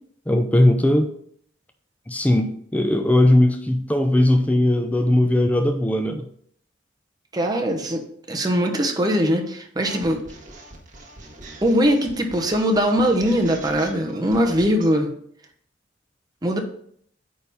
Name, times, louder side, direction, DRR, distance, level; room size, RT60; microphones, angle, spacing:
voice 1, 0.3-1.1 2.1-6.3, left 1 dB, 10° left, 5 dB, 0.5 m, -19 dB
voice 2, 7.3-10.2 11.6-15.1 16.4-16.6, equal, 20° right, 2 dB, 0.9 m, -21 dB
sound 1, 9.8-14.9, right 2 dB, 45° right, 1.5 m, -42 dB
8.9 x 3.6 x 4.1 m, 0.65 s
head